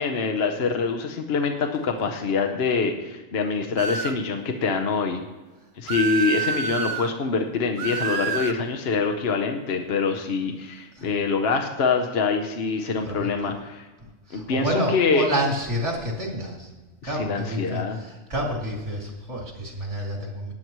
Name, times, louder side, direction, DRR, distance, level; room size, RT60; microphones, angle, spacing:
voice 1, 0.0-5.2 5.8-13.8 14.3-15.3 17.0-18.0, left 5 dB, 60° left, 4 dB, 1.1 m, -25 dB
sound 1, 3.8-4.2 5.9-7.1 7.8-8.6, right 7 dB, 55° right, 0.6 m, -28 dB
voice 2, 13.0-13.5 14.3-16.7 17.0-20.5, equal, 70° right, -2 dB, 3.1 m, -29 dB
18.5 x 9.3 x 3.1 m, 1.2 s
omnidirectional pair, 1.3 m